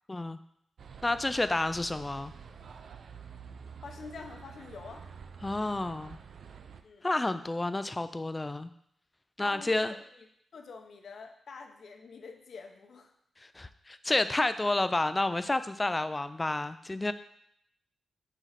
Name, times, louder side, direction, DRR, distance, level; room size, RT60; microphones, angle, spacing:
sound 1, 0.8-6.8, right 6 dB, 70° right, 0.4 m, -48 dB
voice 1, 1.0-2.3 5.4-6.2 7.0-8.7 9.4-9.9 13.4-17.1, left 2 dB, 20° left, 11 dB, 0.4 m, -30 dB
voice 2, 3.8-5.1 6.8-7.1 9.4-13.1, left 4 dB, 70° left, 4 dB, 0.8 m, -46 dB
5.0 x 3.9 x 5.7 m, 0.72 s
cardioid pair, 95°, 0 cm